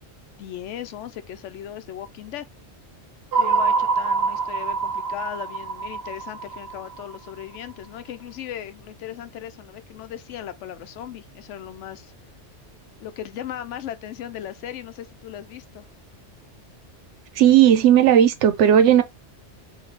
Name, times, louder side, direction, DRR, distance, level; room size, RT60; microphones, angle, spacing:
voice 1, 0.4-2.5 3.4-12.1 13.0-15.9, left 11 dB, 85° left, 0.9 m, -37 dB
sound 1, 3.3-7.6, right 5 dB, 60° right, 1.0 m, -25 dB
voice 2, 17.3-19.0, right 10 dB, 90° right, 1.0 m, -15 dB
3.3 x 2.7 x 3.5 m
omnidirectional pair, 1.2 m